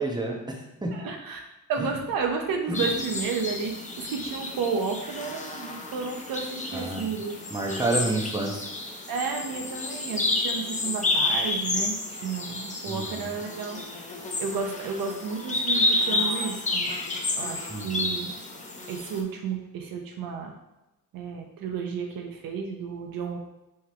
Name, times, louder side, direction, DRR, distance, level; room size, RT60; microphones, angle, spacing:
voice 1, 0.0-0.9 1.8-1.9 2.7-2.9 6.7-7.1 7.5-8.7 12.8-13.3 17.7-18.1, right 2 dB, 10° right, 0 dB, 1.0 m, -30 dB
voice 2, 0.9-1.4 1.7-3.7 4.0-7.8 9.1-17.0 17.3-18.4 18.9-20.5 21.1-23.4, right 5 dB, 75° right, 3 dB, 0.7 m, -32 dB
sound 1, 2.7-19.2, left 2 dB, 20° left, 0.8 m, -30 dB
3.6 x 3.3 x 4.3 m, 0.97 s
cardioid pair, 65°, 34 cm